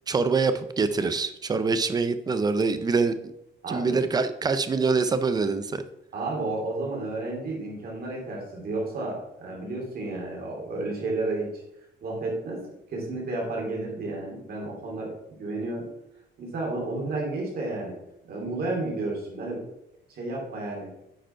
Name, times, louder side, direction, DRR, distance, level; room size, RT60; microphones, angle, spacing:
voice 1, 0.1-3.1 3.7-5.8, right 4 dB, 20° right, 11 dB, 0.5 m, -25 dB
voice 2, 3.6-4.0 6.1-11.5 12.0-12.6 12.9-15.9 16.4-17.9 18.2-19.7 20.1-20.9, right 2 dB, 55° right, -1 dB, 2.8 m, -32 dB
9.0 x 5.0 x 4.5 m, 0.83 s
cardioid pair, 170°, 19 cm